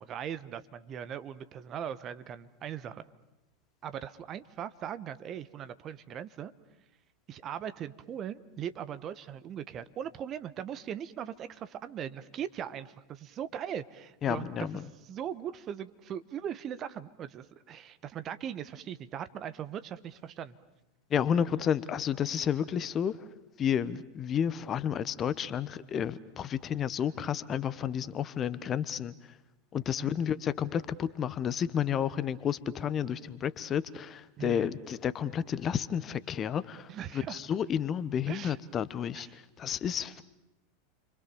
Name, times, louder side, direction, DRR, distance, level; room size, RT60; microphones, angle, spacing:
voice 1, 0.0-3.0 3.8-6.5 7.3-20.6 21.1-21.2 30.0-30.1 34.4-34.7 36.9-37.4 38.3-38.6 39.1-39.4 40.0-40.1, right 9 dB, 35° right, 13 dB, 1.2 m, -39 dB
voice 2, 14.2-14.8 21.1-23.2 23.6-29.1 29.7-36.9 37.1-37.2 37.5-39.3 39.6-40.2, left 8 dB, 30° left, 16 dB, 1.1 m, -31 dB
29.5 x 24.5 x 7.1 m, 0.93 s
figure-of-eight pair, 85°, 0 cm